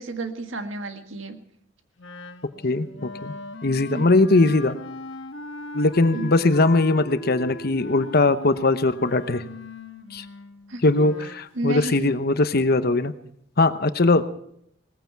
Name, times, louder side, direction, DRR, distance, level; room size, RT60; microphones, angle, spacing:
voice 1, 0.0-1.4 3.9-4.1 6.1-6.3 10.7-11.1 11.5-12.1, right 2 dB, 85° right, 7 dB, 1.7 m, -31 dB
Wind instrument woodwind instrument, 2.0-11.4, left 2 dB, 75° left, 1.3 m, -39 dB
voice 2, 2.6-3.3 3.6-4.8 5.7-9.4 10.1-10.2 10.8-13.1 13.6-14.2, left 2 dB, 50° left, 11 dB, 0.9 m, -20 dB
19.0 x 15.0 x 4.7 m, 0.70 s
head